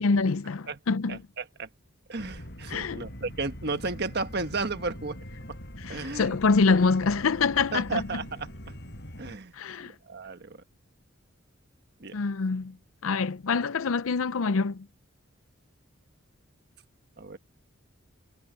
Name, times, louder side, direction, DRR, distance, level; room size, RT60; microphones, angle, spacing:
voice 1, 0.0-1.2 2.7-3.0 5.8-8.0 9.5-9.9 12.1-12.8 13.0-14.9, left 4 dB, 85° left, 0.6 m, -25 dB
voice 2, 1.1-1.7 2.1-5.2 5.9-6.4 7.7-8.7 9.2-9.5 9.8-10.6 12.0-12.2 17.2-17.4, right 3 dB, 50° right, 1.5 m, -34 dB
sound 1, 2.2-9.4, equal, 55° left, 6.5 m, -43 dB
head